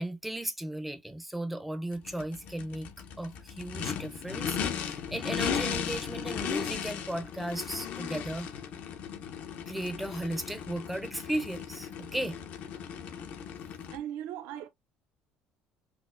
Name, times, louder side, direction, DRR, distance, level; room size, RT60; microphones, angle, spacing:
voice 1, 0.0-2.9 3.2-8.5 9.7-12.4, right 1 dB, 5° right, 0.5 m, -36 dB
Race car auto racing / Idling / Accelerating revving vroom, 1.9-14.0, left 7 dB, 55° left, 0.6 m, -36 dB
voice 2, 13.9-14.7, right 11 dB, 80° right, 0.4 m, -38 dB
4.0 x 2.0 x 2.4 m
cardioid pair, 140°, 3 cm